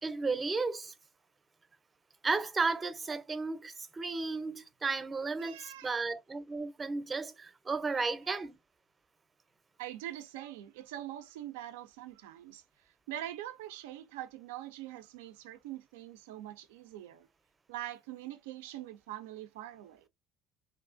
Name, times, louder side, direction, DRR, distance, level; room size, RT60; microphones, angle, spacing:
voice 1, 0.0-0.9 2.2-8.6, right 4 dB, 25° right, 0.5 m, -34 dB
voice 2, 5.4-6.0 7.9-8.1 9.8-12.6 13.1-17.3 17.7-20.0, right 13 dB, 85° right, 0.3 m, -43 dB
2.9 x 2.4 x 2.5 m
hypercardioid pair, 70°, 0 cm